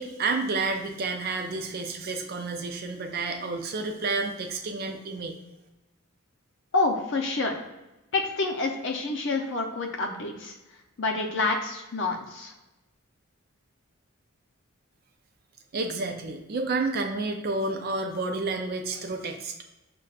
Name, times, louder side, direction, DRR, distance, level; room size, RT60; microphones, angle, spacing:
voice 1, 0.0-5.4 15.7-19.5, right 3 dB, 45° right, 4 dB, 0.4 m, -30 dB
voice 2, 6.7-7.5 8.1-10.5 11.0-12.5, left 3 dB, 55° left, 3 dB, 0.5 m, -28 dB
5.9 x 2.2 x 2.4 m, 1.0 s
head